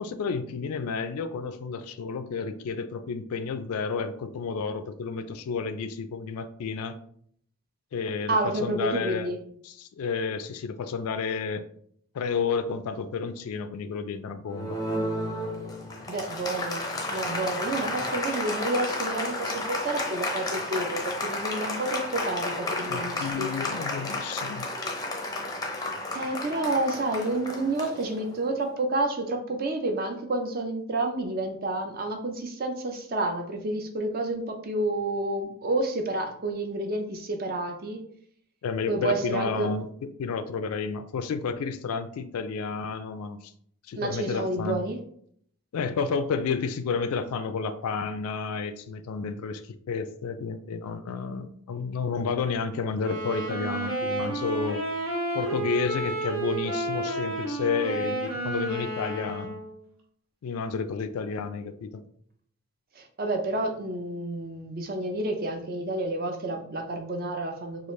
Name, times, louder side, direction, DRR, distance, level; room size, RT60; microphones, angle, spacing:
voice 1, 0.0-7.0 7.9-9.3 9.6-11.6 12.1-14.8 22.9-24.7 38.6-43.5 43.9-44.9 45.7-54.8 55.3-59.6 60.4-62.0, left 5 dB, 85° left, 9 dB, 0.3 m, -31 dB
voice 2, 8.3-9.4 16.1-23.5 26.1-38.0 38.9-39.7 44.0-45.0 63.0-67.9, right 2 dB, 40° right, 4 dB, 0.5 m, -30 dB
Applause, 14.5-28.6, left 2 dB, 15° left, 0.5 m, -32 dB
sound 1, 52.9-59.8, right 2 dB, 75° right, 0.9 m, -31 dB
4.8 x 2.4 x 3.1 m, 0.65 s
head